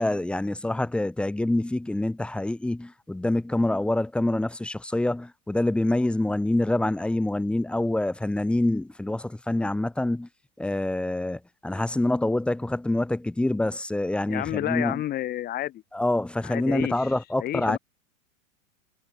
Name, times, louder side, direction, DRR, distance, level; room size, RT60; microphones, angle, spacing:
voice 1, 0.0-10.3 10.6-15.0 15.9-17.8, left 1 dB, ahead, 1.9 m, -26 dB
voice 2, 14.3-15.8 16.4-16.9 17.4-17.8, left 13 dB, 20° left, 4.2 m, -30 dB
supercardioid pair, 165°, 41 cm